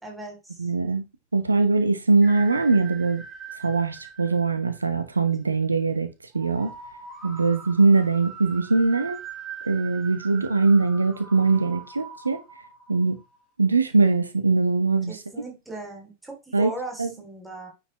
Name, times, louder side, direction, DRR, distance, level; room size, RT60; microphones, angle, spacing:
voice 1, 0.0-0.7 15.1-17.7, right 2 dB, 5° right, 3.3 m, -38 dB
voice 2, 0.6-1.0 1.3-3.2 3.6-6.1 6.3-6.7 7.2-9.2 9.6-12.4 12.9-13.2 13.6-15.2 16.5-16.7 17.0-17.1, right 3 dB, 80° right, 0.9 m, -21 dB
sound 1, 2.2-5.0 6.3-13.4, right 6 dB, 20° right, 3.2 m, -42 dB
9.8 x 5.2 x 3.2 m
figure-of-eight pair, 90°, 0 cm